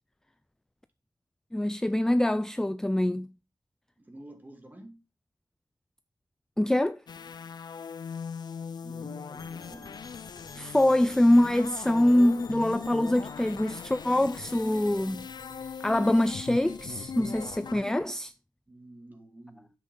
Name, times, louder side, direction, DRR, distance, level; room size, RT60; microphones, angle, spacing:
voice 1, 1.5-3.3 6.6-7.0 10.6-15.3 15.8-18.3, left 1 dB, 5° left, 0.4 m, -24 dB
voice 2, 4.0-5.0 8.8-10.0 18.7-19.7, right 1 dB, 20° right, 2.5 m, -49 dB
sound 1, 7.1-17.9, left 6 dB, 70° left, 0.4 m, -40 dB
sound 2, 9.3-17.6, left 3 dB, 50° left, 1.9 m, -51 dB
9.5 x 7.6 x 3.9 m
wide cardioid pair, 135°, 8 cm